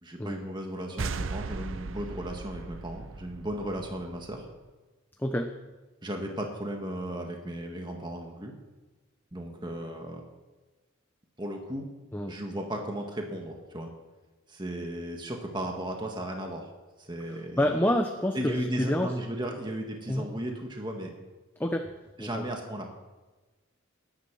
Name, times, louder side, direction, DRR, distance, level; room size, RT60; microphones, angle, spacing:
voice 1, 0.0-4.5 6.0-8.5 9.3-10.3 11.4-11.9 12.3-13.9 14.5-16.7 17.0-17.7 18.3-21.1 22.2-22.9, right 1 dB, 20° right, 2 dB, 1.6 m, -35 dB
sound 1, 1.0-4.5, right 4 dB, 65° right, 0.6 m, -37 dB
voice 2, 5.2-5.5 12.1-12.4 17.2-19.2 20.1-20.3 21.6-21.9 22.2-22.4, left 1 dB, 10° left, 5 dB, 0.8 m, -28 dB
21.0 x 10.0 x 6.2 m, 1.2 s
head